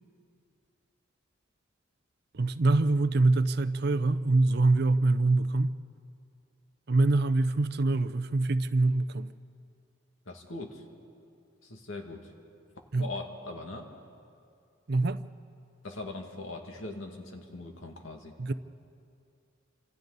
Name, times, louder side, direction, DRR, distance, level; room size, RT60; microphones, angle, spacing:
voice 1, 2.3-5.8 6.9-9.3 12.9-13.1 14.9-15.2 18.4-18.5, right 2 dB, 55° right, 0.6 m, -25 dB
voice 2, 10.3-10.8 11.6-12.3 13.0-13.9 15.8-18.3, left 2 dB, 85° left, 2.2 m, -40 dB
28.0 x 26.5 x 4.1 m
head